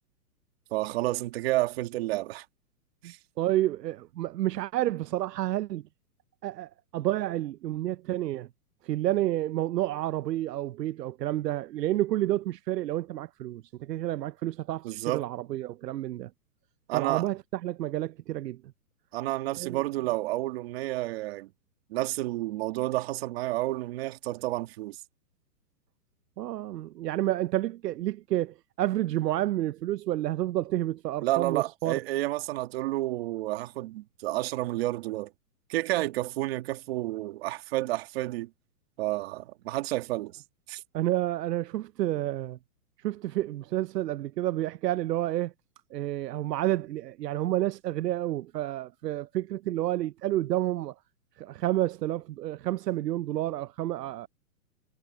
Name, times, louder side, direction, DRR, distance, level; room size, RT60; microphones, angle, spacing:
voice 1, 0.7-2.5 3.0-3.2 14.8-15.3 16.9-17.3 19.1-21.5 21.9-25.0 31.2-35.3 35.7-38.5 39.0-40.4 40.7-40.8, right 17 dB, 40° right, 2.0 m, -30 dB
voice 2, 3.4-5.8 6.4-8.5 8.8-16.3 16.9-18.6 19.6-19.8 26.4-32.0 40.9-42.6 43.0-45.5 45.9-50.9 51.4-54.3, right 14 dB, 85° right, 0.7 m, -30 dB
hypercardioid pair, 165°, 47 cm